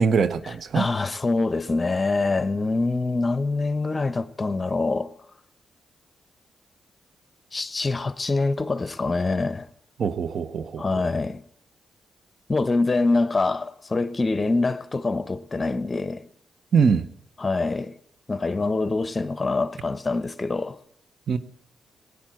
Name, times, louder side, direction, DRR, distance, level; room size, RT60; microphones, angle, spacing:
voice 1, 0.0-0.9 10.0-11.0 16.7-17.1 21.3-21.4, right 5 dB, 65° right, 1.0 m, -22 dB
voice 2, 0.7-5.1 7.5-9.7 10.8-11.4 12.5-16.3 17.4-17.9 18.3-20.8, left 3 dB, 30° left, 1.0 m, -25 dB
17.5 x 10.0 x 7.7 m
supercardioid pair, 55°, 0 cm